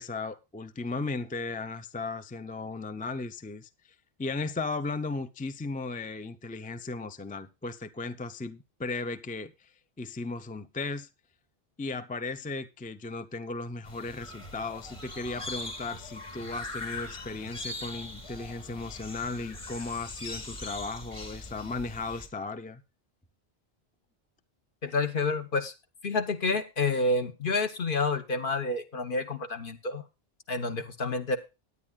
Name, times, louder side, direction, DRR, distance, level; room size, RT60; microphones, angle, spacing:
voice 1, 0.0-11.1 11.8-22.8, left 3 dB, 10° left, 0.4 m, -36 dB
sound 1, 13.8-22.3, left 2 dB, 30° left, 1.7 m, -41 dB
sound 2, 14.2-20.4, right 3 dB, 75° left, 5.2 m, -55 dB
voice 2, 24.8-25.7 26.0-30.0 30.5-31.4, left 3 dB, 55° left, 1.2 m, -29 dB
17.5 x 9.8 x 2.3 m
omnidirectional pair, 1.1 m